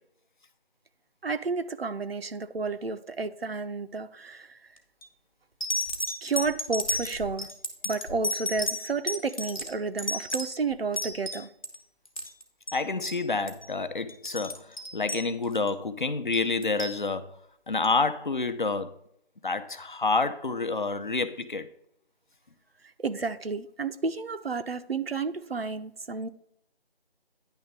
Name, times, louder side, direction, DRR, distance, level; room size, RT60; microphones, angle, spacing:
voice 1, 1.2-4.5 6.2-7.5 7.8-11.5 23.0-26.3, right 4 dB, 70° right, 0.7 m, -31 dB
sound 1, 4.8-5.0 5.6-11.8 12.1-12.4 12.7-12.8 13.0-13.2 13.5-13.7 14.1-15.7 16.3-17.0 17.8-17.9, left 1 dB, 35° left, 1.1 m, -32 dB
voice 2, 12.7-14.6 14.9-17.3 17.7-18.9 19.4-21.7, left 3 dB, 50° left, 0.8 m, -28 dB
10.0 x 3.4 x 6.7 m
figure-of-eight pair, 170°, 31 cm